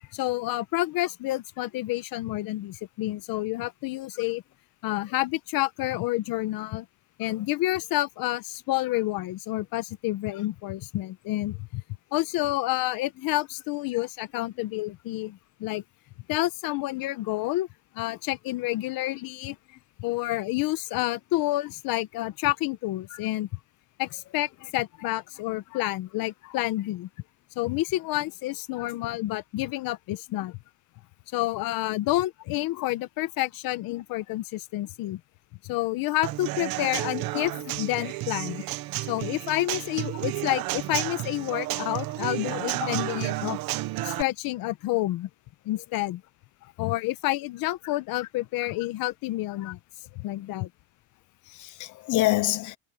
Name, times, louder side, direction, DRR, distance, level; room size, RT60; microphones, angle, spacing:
voice 1, 0.1-4.4 4.8-6.9 7.2-11.8 12.1-15.8 16.3-17.7 17.9-19.6 20.0-23.5 24.0-27.1 27.6-30.6 31.3-35.2 35.6-38.6 39.1-43.6 44.0-45.3 45.6-46.2 46.8-49.8 50.1-50.7, left 17 dB, 85° left, 1.1 m, -29 dB
Human voice / Acoustic guitar / Drum, 36.2-44.2, right 17 dB, 80° right, 1.2 m, -31 dB
voice 2, 51.5-52.8, left 18 dB, 60° left, 0.8 m, -29 dB
cardioid pair, 180°, 34 cm